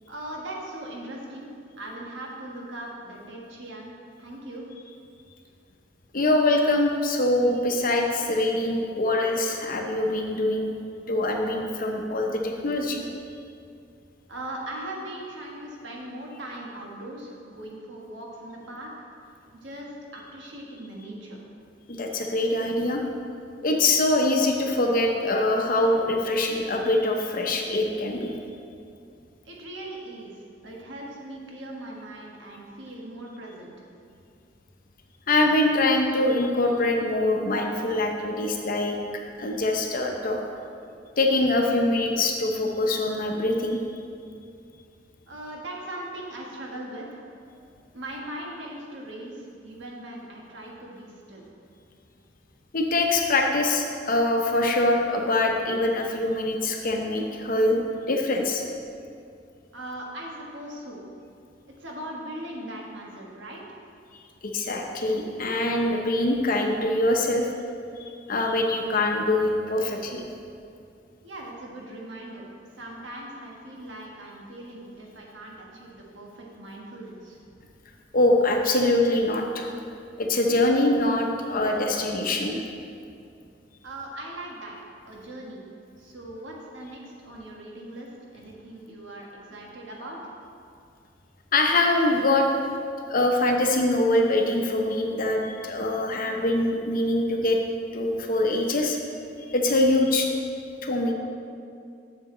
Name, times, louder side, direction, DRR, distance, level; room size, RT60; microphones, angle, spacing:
voice 1, 0.1-1.5 1.8-3.9 4.2-4.7 14.3-18.9 19.5-21.4 29.4-33.8 45.3-47.2 47.9-51.4 59.7-61.0 61.7-63.8 71.2-72.5 72.7-77.4 83.8-84.8 85.1-85.6 86.0-90.2, right 1 dB, 70° right, -2 dB, 1.4 m, -39 dB
voice 2, 6.1-10.8 11.1-13.0 21.9-23.0 23.6-28.3 35.3-39.0 39.4-40.4 41.2-43.8 52.7-57.8 58.1-58.6 64.5-67.5 68.3-70.2 78.1-79.7 80.2-82.6 91.5-92.5 93.1-97.6 97.9-99.0 99.5-100.3 100.8-101.1, left 2 dB, 50° left, 2 dB, 0.8 m, -23 dB
7.8 x 6.5 x 3.8 m, 2.4 s
head